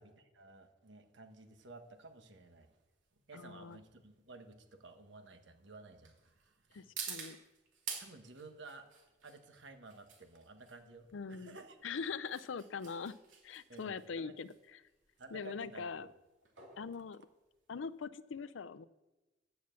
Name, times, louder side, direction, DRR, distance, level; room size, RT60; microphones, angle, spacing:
voice 1, 0.0-2.7 3.3-6.9 8.0-8.9 9.2-11.8 13.7-14.4 15.2-16.1, right 3 dB, 70° right, 7 dB, 1.3 m, -54 dB
sound 1, 1.3-18.0, right 6 dB, 85° right, 2.7 m, -51 dB
voice 2, 3.3-3.8 6.7-7.4 11.1-11.6 11.8-13.2 13.4-14.8 15.3-16.1 16.8-17.2 17.7-18.8, left 5 dB, 85° left, 16 dB, 0.5 m, -42 dB
9.4 x 7.1 x 7.5 m, 1.1 s
head